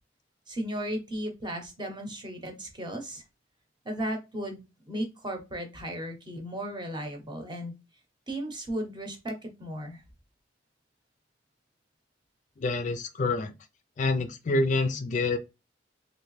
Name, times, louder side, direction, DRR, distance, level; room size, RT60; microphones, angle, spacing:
voice 1, 0.5-3.2 3.8-7.7 8.3-10.0, right 1 dB, 25° right, 0.8 m, -35 dB
voice 2, 12.6-13.5 14.0-15.4, left 3 dB, 45° left, 0.4 m, -27 dB
3.2 x 2.6 x 3.1 m
head